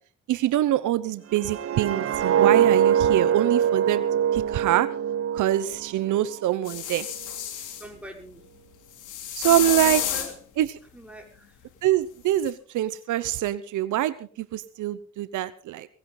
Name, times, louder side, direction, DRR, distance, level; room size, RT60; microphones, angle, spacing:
voice 1, 0.3-4.0 4.3-4.9 5.3-7.1 9.3-10.0 10.6-10.7 11.8-15.9, right 13 dB, 80° right, 15 dB, 0.9 m, -24 dB
sound 1, 1.3-6.4 6.7-7.0, right 9 dB, 50° right, 0.9 m, -23 dB
sound 2, 6.7-7.9 9.0-10.3 12.5-12.6, left 10 dB, 85° left, 2.9 m, -30 dB
voice 2, 7.8-8.4 9.7-10.3 10.9-11.7, right 1 dB, 5° right, 1 dB, 5.3 m, -43 dB
19.0 x 16.5 x 4.0 m, 0.42 s
cardioid pair, 90°, 30 cm